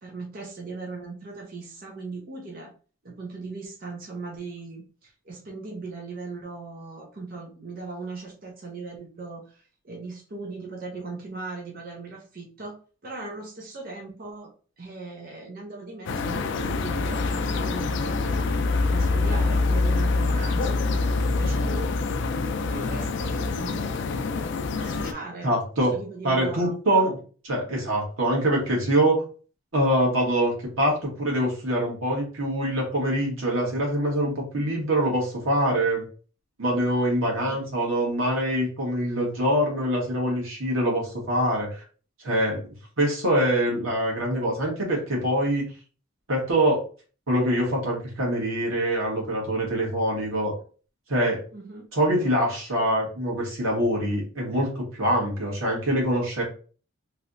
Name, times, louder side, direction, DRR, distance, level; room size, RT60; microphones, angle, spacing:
voice 1, 0.0-2.7 3.0-14.5 14.8-18.7 18.9-20.8 21.3-21.9 22.7-24.2 24.8-25.5 25.9-27.1 37.4-37.6 51.5-51.9, right 3 dB, 45° right, -1 dB, 0.6 m, -38 dB
sound 1, 16.1-25.1, left 3 dB, 60° left, 0.3 m, -25 dB
voice 2, 25.4-25.9 26.2-27.2 27.5-29.2 29.7-36.0 36.6-41.8 42.2-45.6 46.3-46.8 47.3-50.5 51.1-51.4 51.9-56.4, right 1 dB, 90° right, -2 dB, 1.5 m, -24 dB
3.2 x 2.9 x 2.5 m, 0.38 s
head